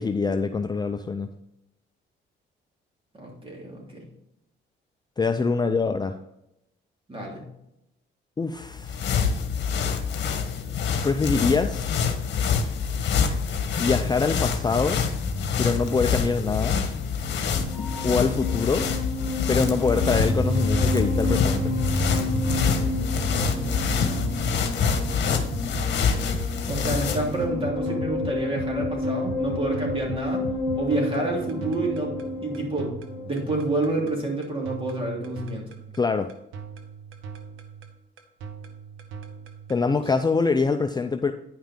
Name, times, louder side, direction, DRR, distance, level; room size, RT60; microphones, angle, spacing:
voice 1, 0.0-1.3 5.2-6.2 8.4-9.0 11.0-12.0 13.8-15.0 15.6-16.8 18.0-18.9 19.5-21.7 36.0-36.3 39.7-41.3, left 4 dB, 20° left, 7 dB, 0.5 m, -24 dB
voice 2, 3.2-4.0 7.1-7.5 26.7-30.5 30.8-32.1 32.4-33.0 33.2-35.6 40.0-40.1, right 2 dB, 25° right, -1 dB, 3.0 m, -28 dB
sound 1, 8.6-27.4, left 6 dB, 60° left, 1.2 m, -26 dB
sound 2, 14.7-33.5, left 1 dB, 5° right, 2.2 m, -30 dB
sound 3, 21.3-39.8, right 4 dB, 85° right, 1.0 m, -38 dB
9.8 x 5.7 x 3.7 m, 0.82 s
cardioid pair, 90°, 20 cm